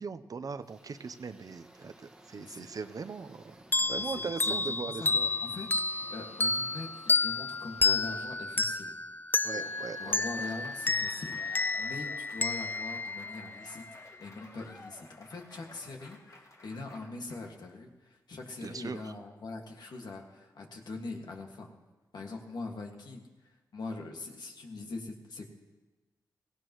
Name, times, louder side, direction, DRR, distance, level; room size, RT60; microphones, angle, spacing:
voice 1, 0.0-3.6 3.9-5.3 9.4-10.2 18.6-19.1, right 5 dB, 50° right, 11 dB, 0.7 m, -40 dB
sound 1, 0.6-12.8, right 1 dB, 10° right, 1.5 m, -58 dB
voice 2, 2.3-2.7 3.9-4.0 4.5-5.1 5.4-5.8 6.1-9.0 9.5-9.7 10.0-13.8 14.2-21.7 22.1-25.5, left 3 dB, 65° left, 1 dB, 1.9 m, -42 dB
sound 2, 3.7-14.0, left 3 dB, 25° left, 0.4 m, -31 dB
Applause / Crowd, 9.5-17.7, left 2 dB, 45° left, 2.0 m, -54 dB
17.5 x 16.0 x 3.1 m, 1.2 s
cardioid pair, 60°, 8 cm